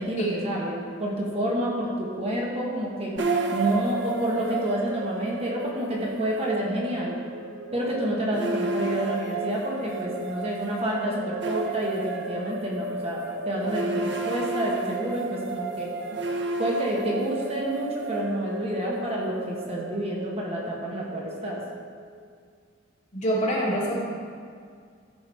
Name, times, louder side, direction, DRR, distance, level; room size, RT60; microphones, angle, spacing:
voice 1, 0.0-3.1 3.5-7.2 7.7-15.9 16.6-21.6, right 1 dB, 30° right, -3 dB, 1.4 m, -29 dB
sound 1, 3.2-22.3, right 3 dB, 60° right, 0.7 m, -32 dB
voice 2, 23.1-24.0, right 1 dB, 35° left, -6 dB, 2.3 m, -25 dB
13.5 x 5.5 x 4.5 m, 2.1 s
head